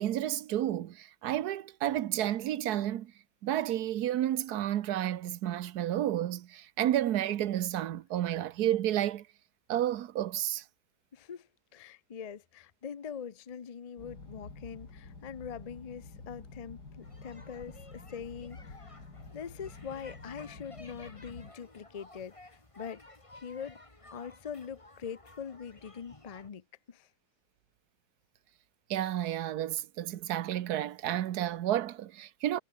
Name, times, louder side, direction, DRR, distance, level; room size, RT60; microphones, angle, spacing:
voice 1, 0.0-3.1 3.4-9.3 9.7-10.6 28.9-32.6, right 12 dB, 75° right, 1.3 m, -31 dB
voice 2, 11.1-18.9 19.3-23.0 23.3-23.8 24.1-27.1, left 7 dB, 55° left, 0.4 m, -43 dB
sound 1, 14.0-21.5, left 3 dB, 80° left, 4.5 m, -49 dB
sound 2, 17.0-26.5, left 2 dB, 20° left, 2.5 m, -54 dB
omnidirectional pair, 1.7 m